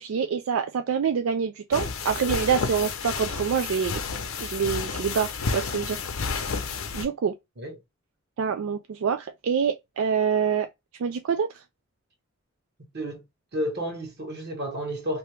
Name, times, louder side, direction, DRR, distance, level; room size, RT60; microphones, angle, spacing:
voice 1, 0.0-6.0 6.3-6.6 6.9-7.4 8.4-10.7 11.0-11.6, right 7 dB, 75° right, 0.4 m, -26 dB
sound 1, 1.7-7.1, left 5 dB, 90° left, 0.6 m, -31 dB
voice 2, 13.5-15.2, equal, 55° right, 1.2 m, -31 dB
2.8 x 2.7 x 3.2 m
head